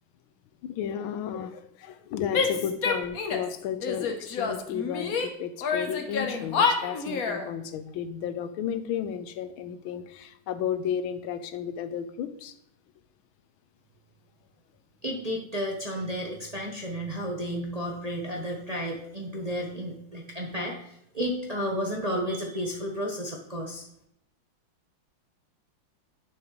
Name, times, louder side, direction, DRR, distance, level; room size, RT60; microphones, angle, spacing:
voice 1, 0.6-12.5, left 8 dB, 85° left, 11 dB, 1.5 m, -33 dB
Female speech woman speaking / Yell, 2.3-3.5 3.8-5.3 5.6-7.5, left 5 dB, 55° left, 1.2 m, -28 dB
voice 2, 15.0-23.8, equal, 30° right, -1 dB, 0.8 m, -32 dB
10.5 x 6.5 x 3.1 m, 0.76 s
omnidirectional pair, 2.2 m